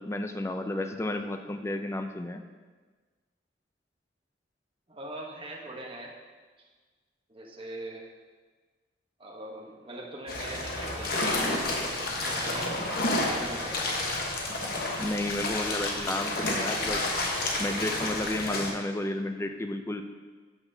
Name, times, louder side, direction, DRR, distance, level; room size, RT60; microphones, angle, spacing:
voice 1, 0.0-2.4 15.0-17.0 17.6-20.0, left 1 dB, 15° left, 7 dB, 0.4 m, -32 dB
voice 2, 4.9-6.1 6.6-6.7 7.3-8.0 9.2-11.2 11.8-14.0 18.2-18.4, right 1 dB, 30° right, -2 dB, 1.0 m, -42 dB
sound 1, 10.3-18.7, left 2 dB, 55° left, 1.1 m, -30 dB
11.5 x 5.8 x 2.7 m, 1.4 s
head